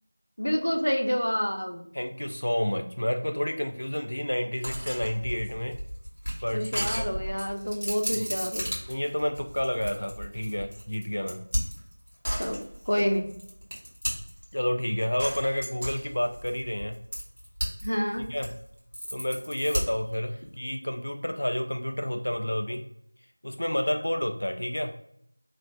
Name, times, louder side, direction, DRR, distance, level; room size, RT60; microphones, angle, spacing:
voice 1, 0.4-1.9 6.5-8.7 12.4-13.3 17.8-18.2, equal, 85° left, 3 dB, 0.7 m, -28 dB
voice 2, 1.9-5.8 6.4-7.2 8.1-8.3 8.9-11.4 14.5-17.0 18.3-18.6 19.1-22.8 23.4-24.9, equal, 50° left, 5 dB, 0.4 m, -30 dB
sound 1, 4.6-14.5 15.2-17.9 18.2-20.1, equal, 60° right, 1.5 m, -34 dB
3.1 x 2.1 x 2.6 m, 0.68 s
figure-of-eight pair, 180°, 0 cm